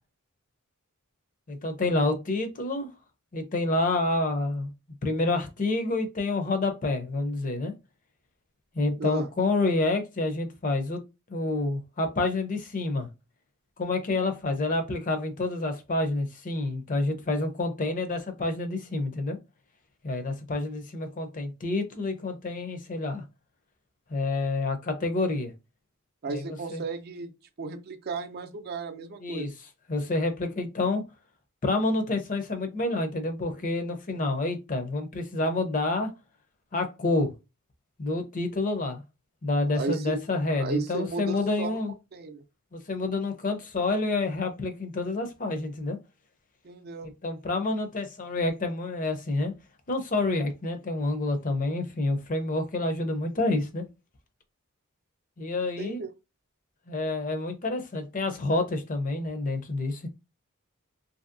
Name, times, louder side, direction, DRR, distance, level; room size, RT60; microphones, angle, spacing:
voice 1, 1.5-2.9 3.3-4.7 5.0-7.7 8.7-11.0 11.3-13.1 13.8-19.4 20.0-23.2 24.1-25.5 26.3-26.8 29.2-29.5 29.9-31.0 31.6-36.1 36.7-37.3 38.0-39.0 39.4-41.9 42.7-46.0 47.2-49.5 49.9-53.9 55.4-56.0 56.9-60.1, left 2 dB, 40° left, 0.6 m, -28 dB
voice 2, 9.0-9.3 26.2-27.3 27.6-29.5 39.7-40.2 40.6-41.8 42.1-42.4 46.6-47.1 55.8-56.1, right 4 dB, 45° right, 0.5 m, -34 dB
2.8 x 2.7 x 2.5 m
head